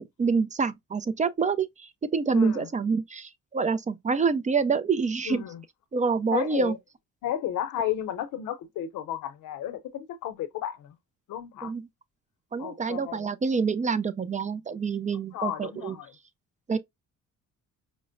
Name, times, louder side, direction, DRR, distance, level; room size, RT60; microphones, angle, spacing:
voice 1, 0.0-5.4 5.9-6.7 11.6-11.8 12.5-16.0 16.7-16.8, right 5 dB, 25° right, 0.4 m, -27 dB
voice 2, 2.3-2.7 5.3-5.6 6.3-6.8 7.2-11.0 11.3-11.7 12.6-13.3 15.1-16.1, left 11 dB, 85° left, 0.7 m, -33 dB
5.1 x 2.1 x 2.4 m
cardioid pair, 90°, 30 cm